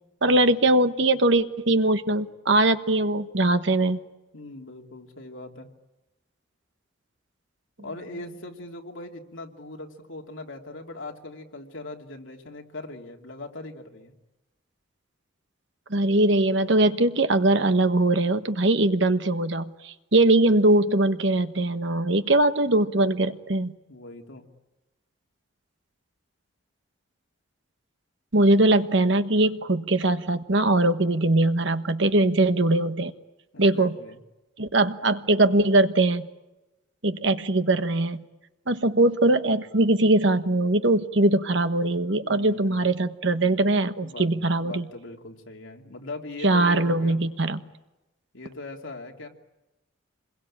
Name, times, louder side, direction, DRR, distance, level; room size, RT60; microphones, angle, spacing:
voice 1, 0.2-4.0 15.9-23.7 28.3-33.1 33.6-33.9 34.6-36.3 37.0-38.2 38.7-44.8 46.4-47.6, right 2 dB, 60° right, 10 dB, 1.2 m, -21 dB
voice 2, 4.3-5.7 7.8-14.1 23.9-24.4 33.5-34.2 42.2-42.9 44.0-47.2 48.3-49.3, left 2 dB, 70° left, 2 dB, 2.9 m, -40 dB
27.5 x 22.0 x 8.8 m, 1.0 s
head